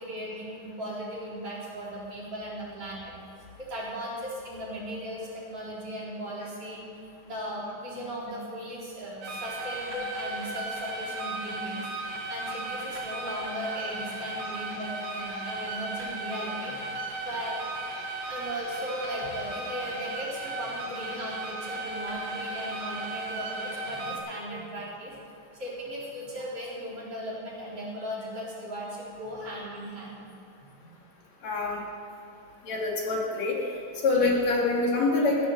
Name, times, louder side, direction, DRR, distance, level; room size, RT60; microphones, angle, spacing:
voice 1, 0.0-3.2 3.6-6.8 7.2-11.8 12.3-16.9 17.2-17.6 18.3-25.1 25.5-30.3 30.8-30.9, equal, 50° right, -6 dB, 5.0 m, -37 dB
sound 1, 9.2-24.2, right 2 dB, 90° right, 3.3 m, -36 dB
voice 2, 31.4-31.8 32.6-33.6 34.0-35.5, left 3 dB, 65° left, -2 dB, 3.5 m, -25 dB
15.5 x 11.5 x 6.9 m, 2.6 s
omnidirectional pair, 3.3 m